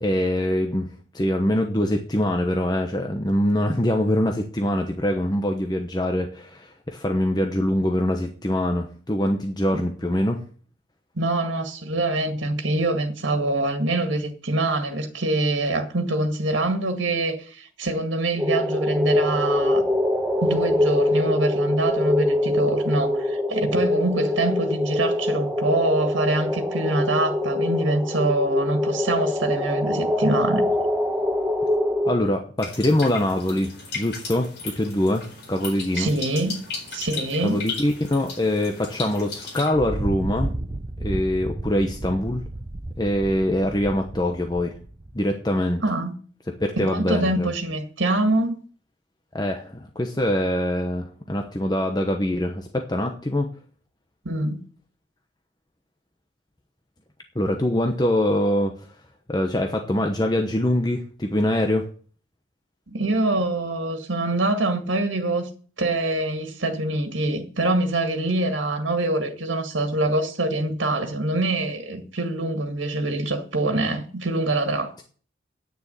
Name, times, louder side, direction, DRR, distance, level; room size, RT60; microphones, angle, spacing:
voice 1, 0.0-10.4 32.1-36.1 37.4-40.5 41.0-42.4 43.0-44.7 45.1-45.8 46.6-47.5 49.3-53.5 57.3-58.7 59.3-61.9, left 1 dB, 20° left, 1.0 m, -24 dB
voice 2, 11.2-19.8 20.4-30.6 35.9-36.6 36.9-37.6 45.8-46.2 46.8-48.6 54.3-54.7 62.9-65.5 65.8-75.0, right 2 dB, 85° right, 2.0 m, -24 dB
sound 1, 18.4-32.1, left 1 dB, 5° right, 1.4 m, -24 dB
sound 2, 32.6-39.7, left 4 dB, 60° left, 4.4 m, -36 dB
Thunder, 39.7-45.2, right 1 dB, 30° right, 0.7 m, -32 dB
9.7 x 7.0 x 8.3 m
head